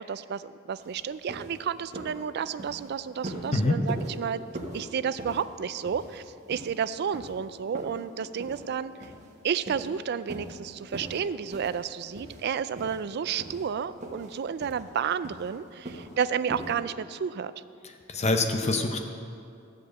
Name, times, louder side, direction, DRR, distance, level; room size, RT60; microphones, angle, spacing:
voice 1, 0.0-4.4 4.7-9.1 9.4-17.5, right 7 dB, 55° right, 15 dB, 0.3 m, -31 dB
sound 1, 0.8-0.9 1.3-1.5 1.9-2.2 2.5-2.8 3.2-3.5 3.9-4.1 4.5-4.8 5.2-5.4 5.8-6.2 6.5-6.7 7.1-7.3 7.7-8.0 8.4-8.6 9.0-9.3 9.6-9.9 10.3-10.5 10.9-11.2 11.5-11.8 12.1-12.4 12.7-13.0 13.4-13.7 14.0-14.3 14.6-14.8 15.2-15.5 15.8-16.1 16.5-16.8, right 1 dB, 35° right, 1.5 m, -40 dB
voice 2, 18.1-19.0, left 2 dB, 35° left, 5 dB, 0.7 m, -25 dB
13.5 x 5.1 x 7.8 m, 2.5 s
head